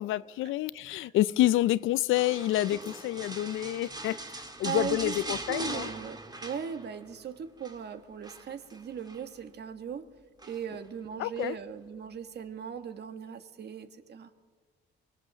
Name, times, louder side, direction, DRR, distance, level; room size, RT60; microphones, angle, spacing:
voice 1, 0.0-5.9 11.2-11.6, left 14 dB, 85° left, 0.5 m, -28 dB
sound 1, 2.2-7.2 7.4-7.8 8.2-9.3 10.4-10.9 11.4-11.5, right 2 dB, 20° right, 2.1 m, -41 dB
voice 2, 4.6-5.2 5.5-10.1 10.4-14.3, right 7 dB, 55° right, 1.5 m, -38 dB
24.0 x 18.5 x 7.1 m
cardioid pair, 90°, 20 cm